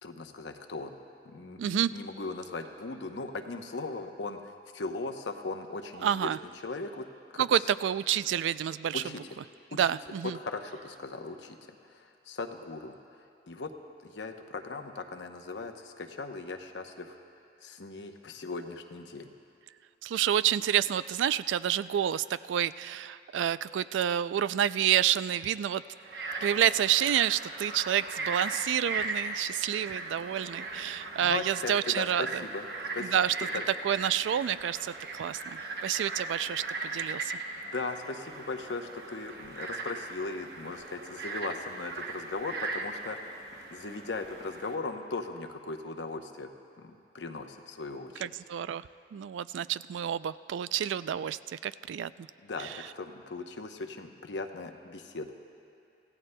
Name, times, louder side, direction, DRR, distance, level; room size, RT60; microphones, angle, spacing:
voice 1, 0.0-1.0 1.2-6.3 6.6-7.1 7.3-7.4 8.9-9.2 9.7-9.9 10.2-11.6 11.8-13.7 14.0-17.2 17.6-19.3 31.2-32.7 32.9-33.1 33.5-33.6 37.6-43.2 43.7-46.5 46.8-48.2 52.4-55.3, left 3 dB, 75° left, 5 dB, 0.8 m, -38 dB
voice 2, 1.6-1.9 6.0-6.4 7.4-9.0 9.7-10.4 20.0-25.8 26.4-32.4 33.0-33.3 33.8-37.3 48.2-48.8 49.1-52.3 52.6-52.7, right 10 dB, 85° right, 16 dB, 0.3 m, -29 dB
Frog, 26.0-44.7, right 3 dB, 60° right, 0.9 m, -38 dB
26.0 x 15.5 x 2.2 m, 2.6 s
head